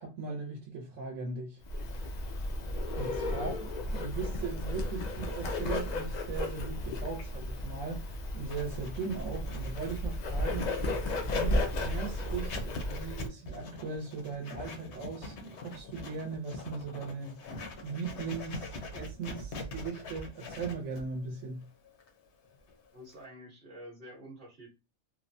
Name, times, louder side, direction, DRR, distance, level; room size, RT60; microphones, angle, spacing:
voice 1, 0.0-1.6 3.0-10.7 11.3-17.4 17.8-21.7, right 4 dB, 80° right, 1.1 m, -39 dB
Bird, 1.7-13.3, left 1 dB, 90° left, 0.3 m, -34 dB
voice 2, 3.3-3.6 22.9-24.7, equal, 45° right, 1.0 m, -49 dB
Writing, 8.5-23.2, left 2 dB, 70° left, 0.9 m, -43 dB
3.0 x 2.1 x 2.6 m
omnidirectional pair, 1.3 m